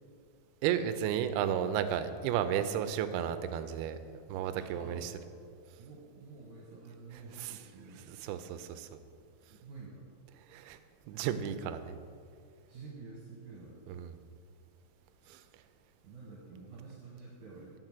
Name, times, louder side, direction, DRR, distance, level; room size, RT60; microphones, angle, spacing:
voice 1, 0.6-4.0 4.3-5.1 7.3-7.6 8.2-8.9 10.5-10.8 11.1-11.9 13.9-14.1 15.3-15.4, right 9 dB, 85° right, 10 dB, 2.5 m, -33 dB
voice 2, 4.6-5.1 5.8-8.2 9.5-10.0 12.7-13.8 16.0-17.8, right 4 dB, 65° right, -3 dB, 2.2 m, -49 dB
9.0 x 6.1 x 7.4 m, 2.3 s
omnidirectional pair, 4.4 m